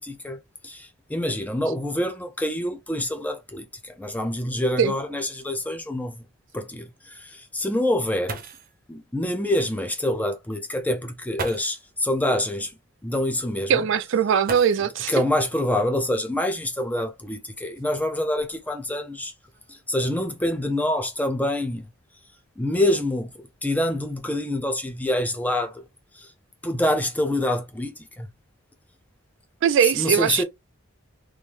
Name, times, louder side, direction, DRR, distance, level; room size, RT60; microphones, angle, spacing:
voice 1, 0.0-6.2 6.5-8.4 8.9-12.7 13.0-13.8 15.1-19.3 19.7-21.9 22.6-23.3 23.6-25.8 26.1-26.3 26.6-28.3 29.8-30.4, left 1 dB, 5° left, 0.5 m, -26 dB
sound 1, 7.9-8.0 8.3-8.8 10.1-10.2 11.3-11.9 14.4-15.2 16.5-16.6 17.4-18.8 19.5-19.9 20.2-20.6, right 4 dB, 40° right, 0.7 m, -38 dB
voice 2, 13.7-15.1 29.6-30.4, right 8 dB, 55° right, 0.3 m, -20 dB
3.1 x 2.6 x 3.5 m
head